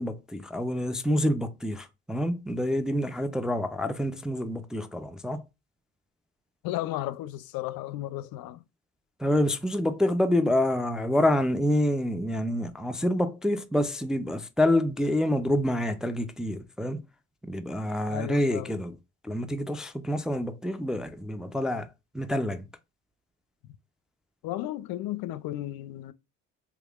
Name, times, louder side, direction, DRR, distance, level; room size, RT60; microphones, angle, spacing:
voice 1, 0.0-5.4 9.2-17.0 17.4-18.9 19.2-21.9 22.1-22.7, left 1 dB, ahead, 0.3 m, -27 dB
voice 2, 6.6-8.6 18.1-18.8 23.6-23.7 24.4-26.1, left 14 dB, 65° left, 0.5 m, -34 dB
3.4 x 3.3 x 2.3 m
supercardioid pair, 75°, 38 cm